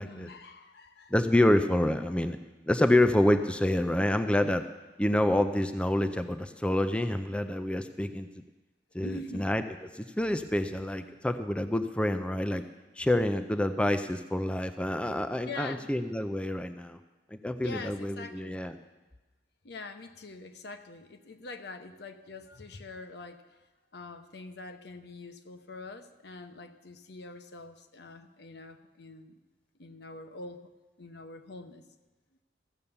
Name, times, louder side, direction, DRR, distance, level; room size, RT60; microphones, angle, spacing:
voice 1, 0.0-1.1 9.0-9.5 15.4-15.9 17.6-18.6 19.6-23.6 23.9-29.3 29.8-30.7 31.0-31.9, left 3 dB, 70° left, 8 dB, 0.9 m, -44 dB
voice 2, 1.1-2.4 2.6-4.7 5.0-8.4 8.9-9.6 9.9-12.6 13.0-17.0 17.3-18.7, left 1 dB, 5° left, 9 dB, 0.4 m, -27 dB
15.0 x 7.0 x 6.9 m, 1.2 s
head